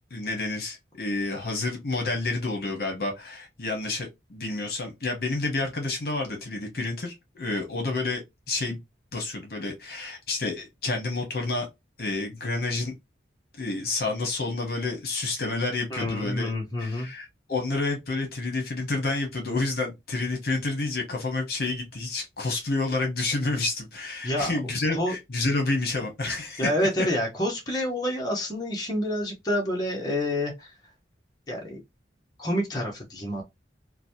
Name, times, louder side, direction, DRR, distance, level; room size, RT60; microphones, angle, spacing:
voice 1, 0.1-8.8 9.1-11.7 12.0-12.9 13.6-16.5 16.8-26.7, left 2 dB, 55° left, 1.0 m, -29 dB
voice 2, 15.9-17.1 24.2-24.5 24.9-25.2 26.6-30.7 31.5-31.8 32.4-33.4, left 1 dB, 20° left, 0.9 m, -28 dB
2.9 x 2.2 x 2.7 m
head